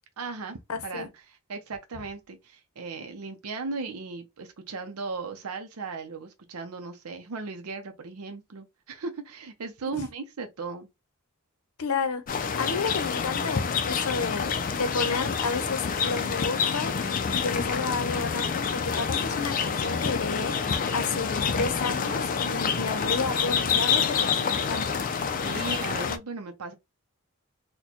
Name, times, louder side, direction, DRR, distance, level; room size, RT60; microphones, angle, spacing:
voice 1, 0.2-10.9 25.4-26.7, right 4 dB, 85° right, 0.6 m, -37 dB
voice 2, 0.7-1.1 11.8-16.9 17.3-24.9, left 4 dB, 80° left, 0.7 m, -32 dB
sound 1, 12.3-26.2, left 6 dB, 40° left, 0.4 m, -27 dB
4.1 x 2.2 x 2.9 m
head